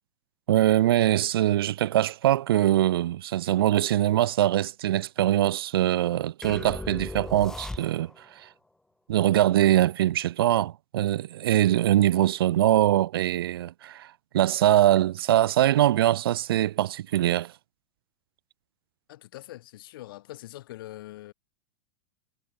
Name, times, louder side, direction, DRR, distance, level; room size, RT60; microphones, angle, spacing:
voice 1, 0.5-8.5 9.1-17.5, right 13 dB, 80° right, 0.8 m, -23 dB
sound 1, 6.4-8.3, left 2 dB, 5° left, 0.5 m, -37 dB
voice 2, 19.1-21.3, left 16 dB, 70° left, 2.7 m, -43 dB
hypercardioid pair, 125°, 12 cm